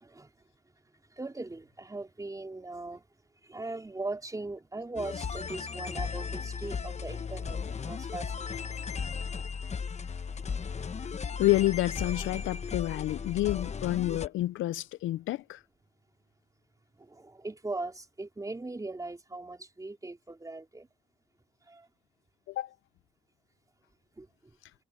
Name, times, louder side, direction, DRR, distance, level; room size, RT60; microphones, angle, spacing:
voice 1, 1.2-3.0 3.5-8.6 17.1-20.9 21.7-21.8 24.2-24.3, right 2 dB, 15° right, 4.0 m, -39 dB
sound 1, 5.0-14.3, left 6 dB, 35° left, 1.0 m, -36 dB
voice 2, 11.4-15.6 22.5-22.7, left 16 dB, 80° left, 0.5 m, -29 dB
cardioid pair, 90°, 20 cm